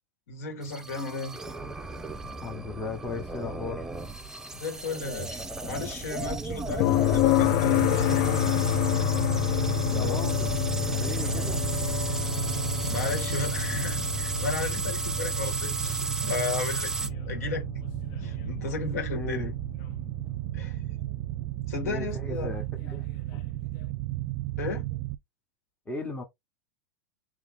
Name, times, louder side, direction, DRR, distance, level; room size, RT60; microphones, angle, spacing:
voice 1, 0.3-1.4 4.5-8.5 10.0-10.2 12.9-17.6 18.2-19.5 20.5-20.8 21.7-22.5 24.6-24.9, left 4 dB, 80° left, 2.0 m, -34 dB
sound 1, 0.6-17.1, right 3 dB, 5° right, 0.6 m, -35 dB
voice 2, 2.4-3.9 9.9-10.5 10.8-11.6 19.1-19.5 21.8-23.4 25.9-26.2, left 3 dB, 15° left, 1.2 m, -37 dB
sound 2, 6.8-20.7 22.9-23.0, left 16 dB, 55° left, 0.4 m, -29 dB
sound 3, 7.4-25.2, right 17 dB, 55° right, 0.5 m, -33 dB
3.6 x 3.0 x 3.5 m
supercardioid pair, 125°, 8 cm